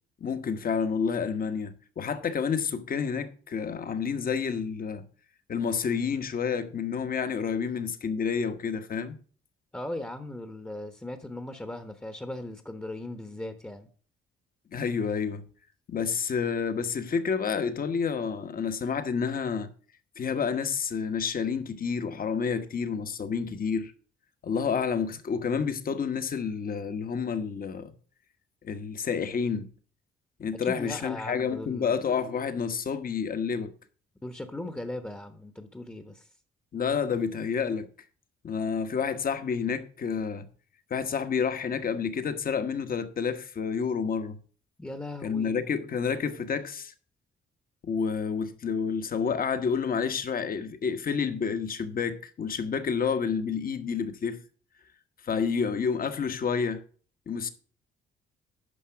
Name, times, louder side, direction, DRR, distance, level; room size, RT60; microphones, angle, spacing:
voice 1, 0.2-5.0 5.5-9.2 14.7-15.4 15.9-19.7 20.2-23.9 24.4-27.9 28.6-29.7 30.4-33.7 36.7-37.9 38.4-40.4 40.9-44.4 45.2-46.9 47.8-54.4 55.2-56.8 57.3-57.5, left 6 dB, 45° left, 1.2 m, -29 dB
voice 2, 9.7-13.9 30.5-32.0 34.2-36.3 44.8-45.5, left 1 dB, 10° left, 1.0 m, -38 dB
9.9 x 5.7 x 5.7 m
cardioid pair, 90°, 20 cm